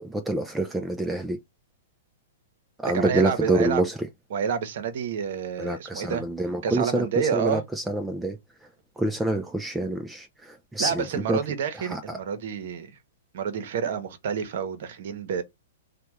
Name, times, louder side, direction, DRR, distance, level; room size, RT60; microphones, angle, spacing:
voice 1, 0.0-1.4 2.8-4.0 5.6-8.4 9.0-11.4 11.8-12.0, right 2 dB, 5° right, 0.4 m, -27 dB
voice 2, 2.9-3.8 4.3-6.2 6.6-7.6 10.8-12.9 13.3-15.4, right 7 dB, 60° right, 0.8 m, -29 dB
3.4 x 2.2 x 3.1 m
hypercardioid pair, 120°, 0 cm